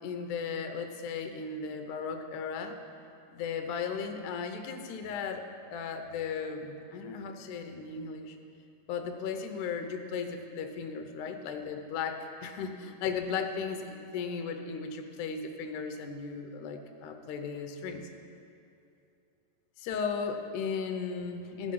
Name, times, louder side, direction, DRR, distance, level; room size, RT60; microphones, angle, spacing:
voice 1, 0.0-2.8 3.3-8.4 8.9-18.0 19.8-21.7, left 5 dB, 75° left, 5 dB, 2.2 m, -36 dB
15.0 x 6.5 x 5.5 m, 2.6 s
omnidirectional pair, 3.7 m